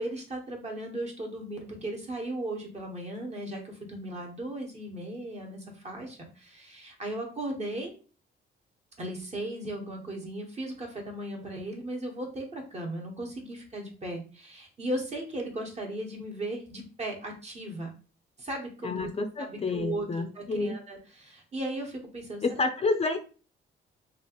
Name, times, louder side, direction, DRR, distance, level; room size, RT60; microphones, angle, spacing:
voice 1, 0.0-7.9 9.0-17.9 18.4-19.1 19.4-22.4, right 1 dB, 35° right, 1 dB, 1.2 m, -36 dB
voice 2, 18.8-20.8 22.4-23.2, left 3 dB, 30° left, 7 dB, 0.4 m, -29 dB
3.0 x 2.5 x 3.0 m, 0.37 s
cardioid pair, 90°, 20 cm